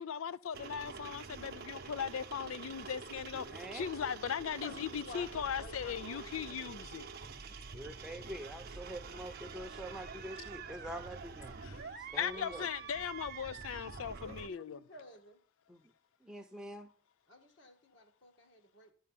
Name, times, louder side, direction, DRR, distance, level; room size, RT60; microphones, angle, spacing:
voice 1, 0.0-7.1 11.6-14.8, left 8 dB, 80° left, 0.4 m, -39 dB
sound 1, 0.5-14.5, right 5 dB, 45° right, 0.7 m, -47 dB
voice 2, 3.3-3.9 7.5-11.6 12.1-12.7 15.7-15.9 16.2-16.9, equal, 5° right, 0.8 m, -46 dB
voice 3, 4.6-6.9 10.7-11.0 12.3-12.7 14.2-15.4 17.3-18.9, left 2 dB, 60° left, 1.9 m, -52 dB
12.0 x 4.8 x 5.8 m
head